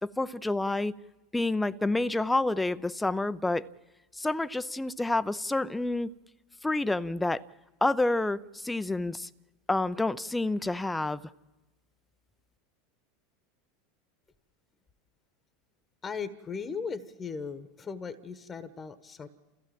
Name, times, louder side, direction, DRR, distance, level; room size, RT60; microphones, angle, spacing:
voice 1, 0.0-0.9 1.3-3.7 4.2-6.1 6.6-7.4 7.8-9.3 9.7-11.2, left 2 dB, 10° left, 0.7 m, -28 dB
voice 2, 16.0-19.3, left 5 dB, 25° left, 1.3 m, -37 dB
29.0 x 15.5 x 7.7 m
hypercardioid pair, 85°, 0 cm